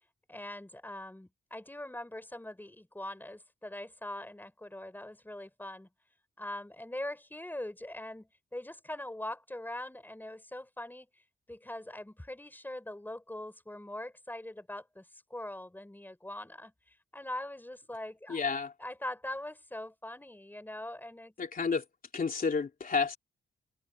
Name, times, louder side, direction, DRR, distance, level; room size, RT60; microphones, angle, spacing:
voice 1, 0.3-5.9 6.4-11.1 11.5-18.4 18.8-21.3, left 1 dB, 10° left, 5.2 m, -42 dB
voice 2, 18.3-18.7 21.4-21.8 22.1-23.2, left 5 dB, 50° left, 3.1 m, -30 dB
cardioid pair, 75°, 19 cm